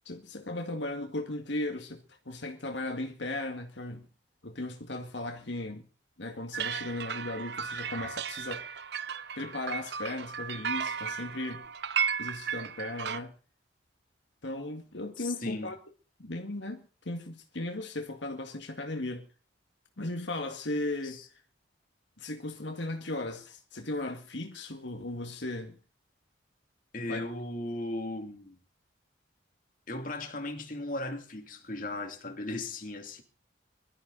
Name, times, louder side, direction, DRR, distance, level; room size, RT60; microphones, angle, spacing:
voice 1, 0.1-4.1 4.4-5.8 6.2-8.7 9.4-11.6 12.2-13.3 14.4-15.8 16.2-19.3 20.0-21.2 22.2-25.8 27.0-27.3, left 2 dB, 75° left, 2.1 m, -36 dB
sound 1, 6.5-13.2, right 7 dB, 60° right, 0.7 m, -35 dB
voice 2, 15.2-15.7 21.0-21.3 26.9-28.6 29.9-33.2, left 2 dB, 45° left, 2.8 m, -37 dB
22.5 x 13.0 x 4.1 m
head